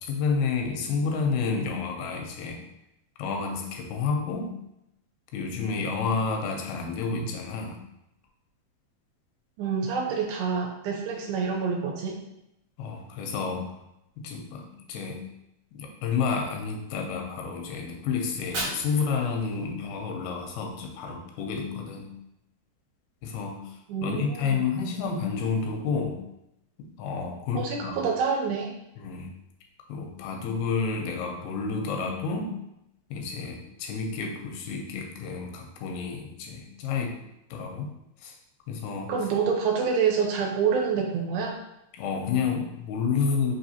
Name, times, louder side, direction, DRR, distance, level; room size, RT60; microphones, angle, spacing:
voice 1, 0.0-2.6 3.2-4.5 5.3-7.8 12.8-13.7 14.2-15.2 15.7-22.1 23.2-23.8 24.0-26.2 26.8-27.9 29.0-29.3 29.9-32.6 33.1-37.2 37.5-37.9 38.2-38.3 38.7-39.1 41.9-43.5, left 5 dB, 85° left, 2 dB, 2.6 m, -30 dB
voice 2, 9.6-12.2 23.9-24.7 27.5-28.7 39.1-41.6, right 6 dB, 80° right, 1 dB, 2.4 m, -27 dB
Fire, 18.2-20.2, right 1 dB, 55° right, 1.9 m, -37 dB
5.9 x 2.9 x 2.7 m, 0.84 s
omnidirectional pair, 4.3 m